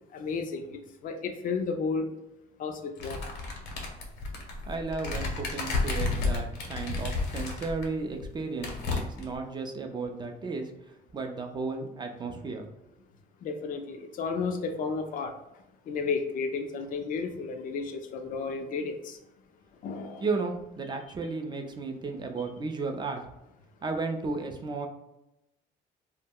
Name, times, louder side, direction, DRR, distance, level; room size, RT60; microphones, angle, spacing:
voice 1, 0.1-2.1 2.6-3.2 13.4-15.3 15.9-19.2 19.8-20.3, left 4 dB, 55° left, 6 dB, 0.4 m, -32 dB
sound 1, 3.0-7.9 8.2-8.3 8.6-9.4, left 3 dB, 80° left, 0.7 m, -31 dB
voice 2, 4.7-10.7 11.1-12.7 20.2-23.2 23.8-24.9, right 3 dB, 25° right, 4 dB, 0.3 m, -34 dB
2.2 x 2.0 x 3.5 m, 0.90 s
cardioid pair, 110°, 17 cm